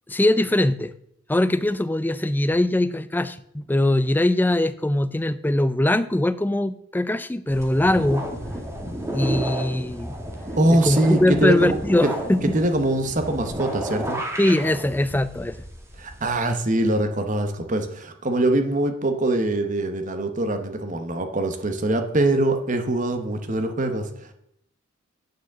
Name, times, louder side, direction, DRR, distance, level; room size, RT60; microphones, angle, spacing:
voice 1, 0.1-0.9 1.3-8.3 9.1-10.2 10.7-12.5 14.4-15.6, left 1 dB, 10° left, 13 dB, 0.3 m, -21 dB
sound 1, 7.5-16.3, right 1 dB, 10° right, 1.3 m, -32 dB
voice 2, 10.6-11.8 12.0-12.1 12.4-14.2 16.0-24.3, right 1 dB, 35° right, 7 dB, 0.9 m, -23 dB
9.3 x 4.9 x 7.2 m, 0.73 s
head